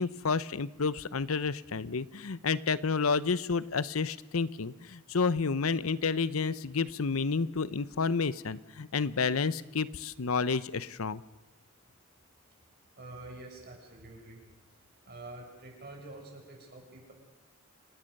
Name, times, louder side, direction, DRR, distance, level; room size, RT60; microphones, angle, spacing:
voice 1, 0.0-11.2, left 5 dB, 80° left, 16 dB, 0.8 m, -30 dB
voice 2, 13.0-14.4 15.0-17.1, right 2 dB, 50° right, 0 dB, 7.6 m, -47 dB
29.0 x 18.5 x 6.6 m, 1.1 s
head